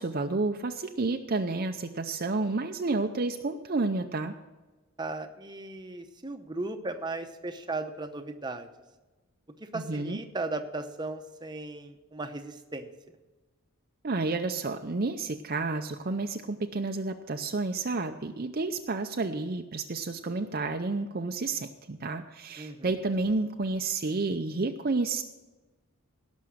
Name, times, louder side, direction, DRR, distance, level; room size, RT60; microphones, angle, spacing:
voice 1, 0.0-4.3 9.7-10.2 14.0-25.2, right 3 dB, 40° right, 5 dB, 0.6 m, -30 dB
voice 2, 5.0-8.7 9.7-12.9 22.6-22.9, right 2 dB, 20° right, 6 dB, 0.8 m, -36 dB
17.5 x 6.2 x 6.3 m, 1.2 s
head